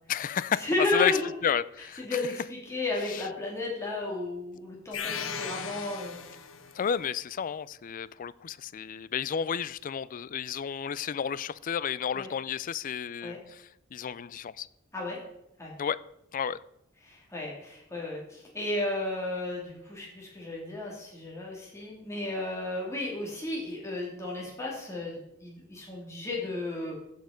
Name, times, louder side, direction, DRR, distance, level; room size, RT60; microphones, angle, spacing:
voice 1, 0.1-2.2 3.1-3.2 6.7-14.7 15.8-16.0 16.3-16.6, left 8 dB, 40° left, 0.3 m, -32 dB
voice 2, 0.6-1.3 2.0-6.2 12.1-12.3 13.2-13.4 14.9-15.2 15.6-15.7 17.0-27.0, left 2 dB, 15° left, 2.6 m, -33 dB
sound 1, 4.9-6.8, left 6 dB, 75° left, 0.9 m, -37 dB
15.0 x 5.4 x 5.0 m
head